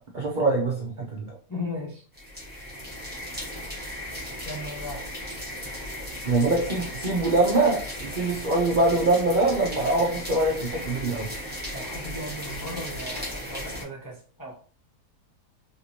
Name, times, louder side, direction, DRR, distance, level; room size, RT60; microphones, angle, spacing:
voice 1, 0.1-1.4 6.3-11.3, right 2 dB, 65° right, 0.4 m, -23 dB
voice 2, 1.5-2.0 4.4-5.1 11.7-14.5, left 1 dB, 30° left, 0.3 m, -36 dB
sound 1, 2.1-13.8, left 1 dB, 10° right, 0.8 m, -36 dB
3.3 x 2.9 x 2.7 m
omnidirectional pair, 1.8 m